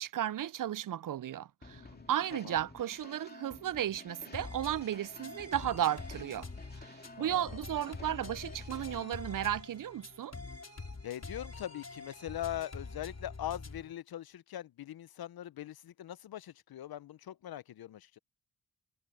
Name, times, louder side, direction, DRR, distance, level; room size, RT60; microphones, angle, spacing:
voice 1, 0.0-1.8 2.1-6.5 6.8-10.3, right 11 dB, 55° right, 0.5 m, -34 dB
sound 1, 1.6-9.2, left 2 dB, 25° left, 2.9 m, -52 dB
voice 2, 1.7-2.1 2.4-2.6 7.2-7.6 11.0-18.2, left 12 dB, 65° left, 0.7 m, -42 dB
sound 2, 4.3-13.9, left 3 dB, 40° left, 4.7 m, -46 dB
cardioid pair, 50°, 39 cm